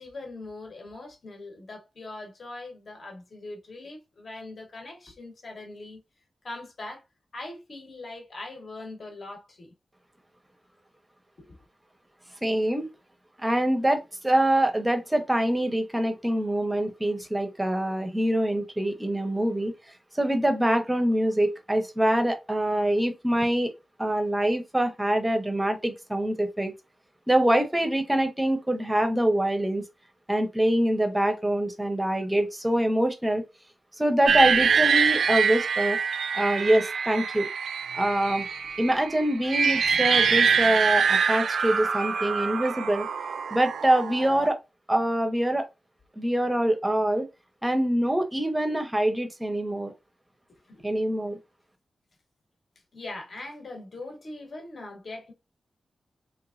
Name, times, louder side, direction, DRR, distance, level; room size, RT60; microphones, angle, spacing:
voice 1, 0.0-6.0 6.4-7.0 7.3-9.7 11.4-11.6 50.5-50.8 52.9-55.3, left 2 dB, 45° left, 1.0 m, -41 dB
voice 2, 12.4-12.9 13.4-19.7 20.1-23.7 24.0-26.7 27.3-29.8 30.3-33.4 34.0-36.0 36.3-37.5 37.9-38.5 38.8-43.1 43.5-44.6 44.9-45.7 46.2-47.3 47.6-49.9 50.8-51.4, right 1 dB, 10° right, 0.7 m, -24 dB
sound 1, 34.3-44.5, right 6 dB, 80° right, 0.4 m, -25 dB
3.4 x 2.9 x 2.5 m
wide cardioid pair, 155°, 0 cm